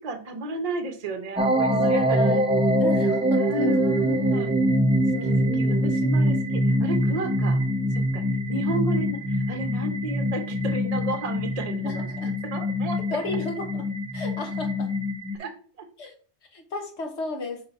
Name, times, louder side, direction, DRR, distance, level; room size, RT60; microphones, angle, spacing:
voice 1, 0.0-2.2 3.3-4.5 5.2-7.6 8.1-8.2 8.5-12.1 12.5-13.0 15.4-15.6, right 2 dB, 35° right, 6 dB, 0.8 m, -32 dB
sound 1, 1.4-15.4, equal, 10° right, 0.4 m, -24 dB
voice 2, 1.7-2.4 2.8-3.7 5.1-5.9 11.8-12.3 13.1-13.9 14.1-14.9 16.0-16.1 16.5-17.6, left 3 dB, 70° left, 4 dB, 1.5 m, -33 dB
4.6 x 3.8 x 5.5 m, 0.43 s
omnidirectional pair, 1.2 m